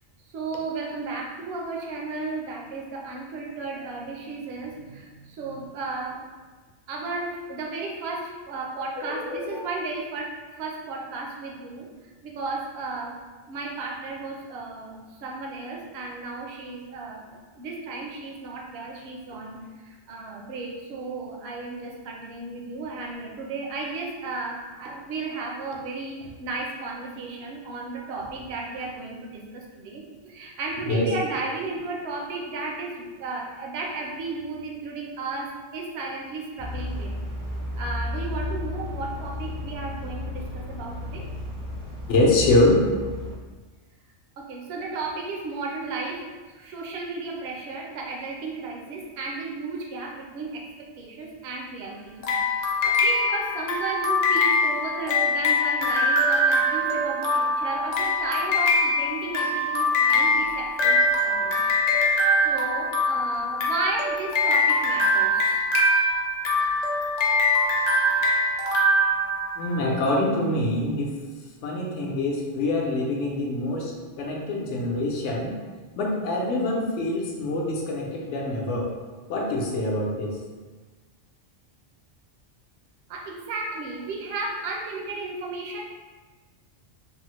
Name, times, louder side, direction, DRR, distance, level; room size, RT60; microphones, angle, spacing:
voice 1, 0.3-6.2 6.9-13.2 13.5-37.2 37.8-41.3 44.4-61.6 62.4-65.6 83.1-85.8, right 3 dB, 65° right, 0 dB, 0.8 m, -34 dB
voice 2, 9.0-9.6 30.9-31.1 42.1-42.8 69.6-71.1 71.6-73.9 74.2-75.5 76.0-78.9 79.3-80.4, left 2 dB, 75° left, -1 dB, 0.9 m, -25 dB
sound 1, 36.6-43.4, left 1 dB, 25° right, 0.4 m, -33 dB
sound 2, 52.2-69.9, left 1 dB, 60° left, 0.4 m, -23 dB
3.4 x 2.0 x 3.0 m, 1.3 s
omnidirectional pair, 1.2 m